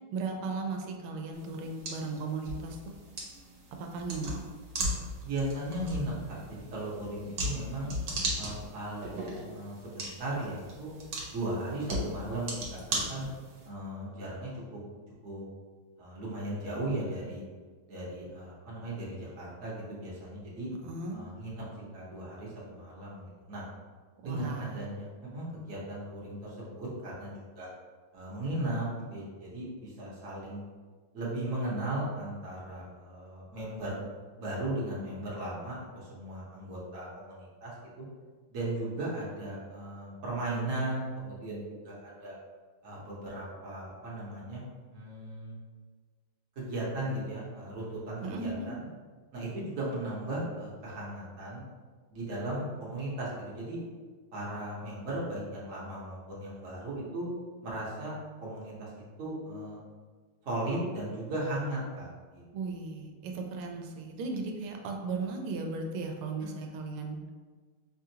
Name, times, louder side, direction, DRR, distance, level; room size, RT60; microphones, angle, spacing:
voice 1, 0.1-2.9 3.8-4.4 20.8-21.3 24.2-24.9 48.2-48.7 62.5-67.2, right 3 dB, 85° right, 2 dB, 1.5 m, -36 dB
sound 1, 1.3-13.7, right 1 dB, 65° right, 1.4 m, -38 dB
voice 2, 5.2-7.9 8.4-10.9 11.3-13.3 13.6-14.8 15.2-15.4 16.0-17.4 17.9-20.7 21.1-21.6 21.9-23.6 24.2-27.7 28.1-30.6 31.1-34.0 34.4-37.7 38.5-42.3 42.8-44.6 44.9-45.6 46.6-48.8 49.3-51.6 52.1-53.8 54.3-57.3 57.6-58.1 58.4-58.9 59.2-59.8 60.4-62.4, right 1 dB, 50° right, -6 dB, 1.1 m, -37 dB
5.2 x 2.4 x 2.8 m, 1.5 s
omnidirectional pair, 2.3 m